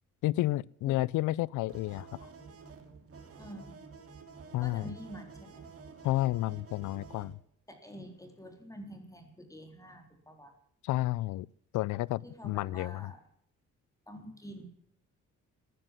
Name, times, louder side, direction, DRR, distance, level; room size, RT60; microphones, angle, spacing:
voice 1, 0.2-2.1 4.5-4.9 6.0-7.4 10.8-11.5 11.7-13.1, left 17 dB, 85° left, 0.5 m, -31 dB
sound 1, 1.7-7.3, right 5 dB, 50° right, 3.0 m, -50 dB
voice 2, 3.4-3.8 4.6-5.7 7.7-10.5 12.2-13.2 14.1-14.7, equal, 10° left, 3.7 m, -47 dB
15.0 x 10.0 x 7.4 m
cardioid pair, 90°, 30 cm